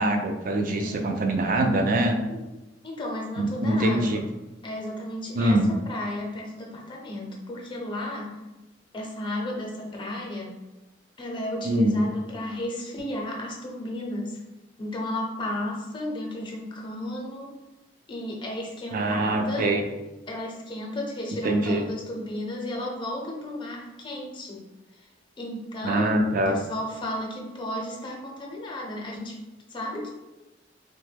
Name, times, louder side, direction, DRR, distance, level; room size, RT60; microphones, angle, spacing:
voice 1, 0.0-2.2 3.4-4.2 5.3-5.7 11.6-12.1 18.9-19.8 21.4-21.8 25.8-26.6, right 1 dB, 50° right, 4 dB, 0.4 m, -23 dB
voice 2, 0.7-1.7 2.3-2.4 2.8-4.2 4.6-8.4 8.9-10.5 11.2-14.4 14.8-17.5 18.1-19.7 20.3-24.6 25.4-29.4 29.7-30.1, left 1 dB, 25° left, -1 dB, 0.6 m, -33 dB
3.0 x 2.1 x 3.3 m, 1.1 s
head